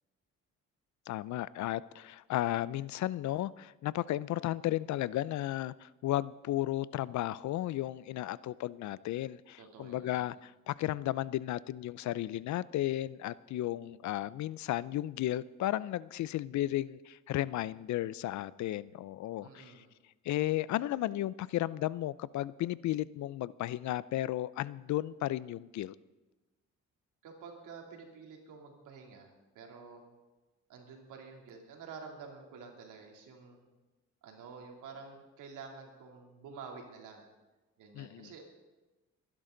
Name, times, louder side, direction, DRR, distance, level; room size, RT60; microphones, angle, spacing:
voice 1, 1.1-19.8 20.2-25.9 37.9-38.3, left 14 dB, 70° left, 20 dB, 0.5 m, -34 dB
voice 2, 9.6-10.3 19.4-19.9 27.2-30.0 30.7-33.6 34.2-37.2 37.8-38.4, right 5 dB, 90° right, 1 dB, 3.0 m, -49 dB
23.5 x 11.0 x 3.9 m, 1.1 s
cardioid pair, 90°, 30 cm